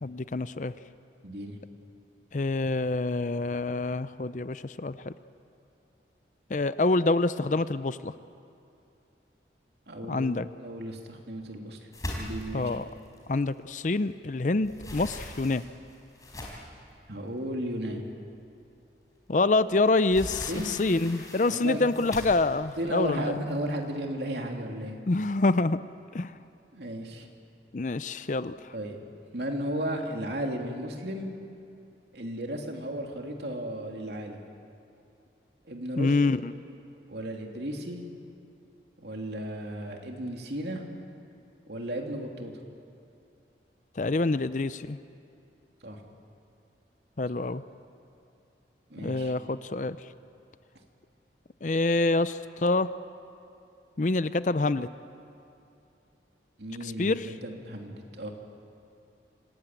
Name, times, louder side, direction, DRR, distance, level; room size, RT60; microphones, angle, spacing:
voice 1, 0.0-0.7 2.3-5.1 6.5-8.1 10.1-10.5 12.5-12.8 13.3-15.6 19.3-23.3 25.1-25.8 26.1-26.4 27.7-28.5 36.0-36.5 44.0-45.0 47.2-47.6 49.0-50.0 51.6-52.9 54.0-54.9 56.8-57.3, left 3 dB, 45° left, 14 dB, 0.5 m, -26 dB
voice 2, 1.2-1.6 9.9-11.8 12.1-12.8 17.1-18.0 20.5-20.7 21.4-21.8 22.8-25.0 26.7-27.3 28.7-29.0 29.3-31.3 32.1-34.4 35.7-36.1 37.1-38.0 39.0-40.8 41.7-42.5 45.8-46.0 48.9-49.3 49.8-49.9 56.6-58.3, equal, 65° right, 2 dB, 2.9 m, -34 dB
sound 1, 11.9-14.1 14.4-16.8 17.5-17.6 18.0-18.1 19.5-23.8, left 1 dB, 20° left, 4.7 m, -41 dB
26.5 x 19.0 x 9.1 m, 2.6 s
head